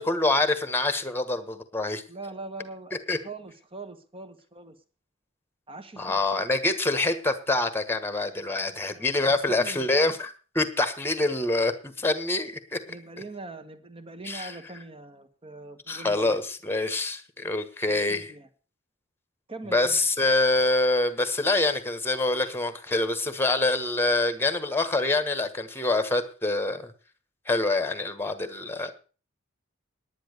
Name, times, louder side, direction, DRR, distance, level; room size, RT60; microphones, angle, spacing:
voice 1, 0.0-2.0 3.1-3.2 6.0-12.8 14.2-14.5 15.9-18.3 19.7-26.9 27.5-28.9, left 2 dB, 10° left, 10 dB, 1.4 m, -26 dB
voice 2, 2.1-4.8 5.7-6.4 8.9-10.1 12.9-16.4 17.9-18.5 19.5-20.0, right 3 dB, 25° right, 8 dB, 1.5 m, -42 dB
10.5 x 9.7 x 6.6 m, 0.37 s
head